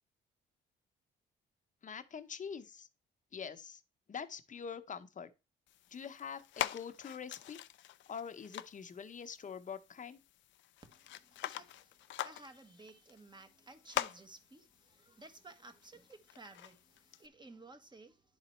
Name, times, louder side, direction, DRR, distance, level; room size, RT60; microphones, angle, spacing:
voice 1, 1.8-2.9 3.3-3.8 4.1-5.3 5.9-7.6 8.1-10.2, left 7 dB, 40° left, 0.8 m, -45 dB
sound 1, 5.7-17.3, left 13 dB, 70° left, 0.5 m, -45 dB
voice 2, 10.9-18.2, right 2 dB, 20° right, 1.3 m, -56 dB
10.5 x 4.0 x 4.4 m
cardioid pair, 90°, 20 cm